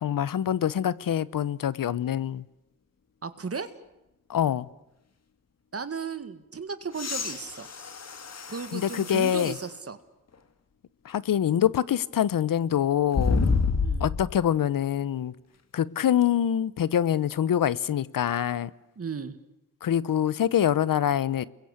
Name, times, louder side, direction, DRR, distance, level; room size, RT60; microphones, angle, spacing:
voice 1, 0.0-2.4 4.3-4.7 8.7-9.5 11.0-13.5 14.0-15.3 15.7-18.7 19.8-21.5, left 10 dB, 75° left, 19 dB, 0.9 m, -25 dB
voice 2, 3.2-3.7 5.7-7.7 8.5-10.0 13.8-14.1 19.0-19.4, right 5 dB, 45° right, 11 dB, 1.8 m, -35 dB
sound 1, 6.9-9.7 10.3-10.4 13.1-14.4 16.2-16.3, left 4 dB, 50° left, 2.0 m, -28 dB
30.0 x 22.0 x 8.2 m, 0.91 s
cardioid pair, 80°, 34 cm